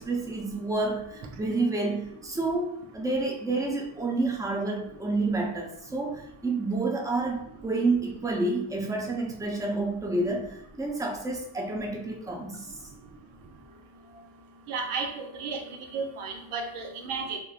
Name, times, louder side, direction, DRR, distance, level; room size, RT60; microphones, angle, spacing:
voice 1, 0.0-12.8, right 2 dB, 5° right, 0 dB, 0.5 m, -29 dB
voice 2, 14.7-15.6 15.9-17.4, right 4 dB, 85° right, 3 dB, 0.6 m, -33 dB
3.0 x 2.0 x 2.3 m, 0.75 s
cardioid pair, 50°, 49 cm